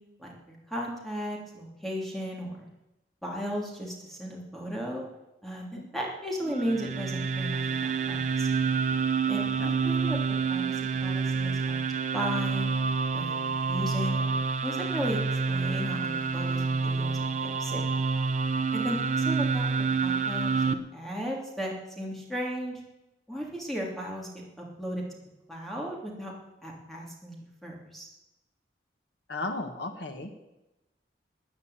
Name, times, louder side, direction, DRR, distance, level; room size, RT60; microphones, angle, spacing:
voice 1, 0.2-2.7 3.2-5.0 5.4-8.6 9.3-10.2 10.5-11.8 12.1-12.7 13.1-15.2 15.5-18.0 18.7-19.7 20.0-22.8 23.3-24.3 24.6-25.0 25.5-26.3 26.6-28.1, equal, ahead, -2 dB, 3.1 m, -35 dB
sound 1, 6.4-20.7, right 5 dB, 45° right, 0.8 m, -28 dB
voice 2, 9.6-10.0 29.3-30.3, left 2 dB, 70° left, 5 dB, 1.5 m, -35 dB
14.5 x 9.5 x 8.6 m, 0.97 s
head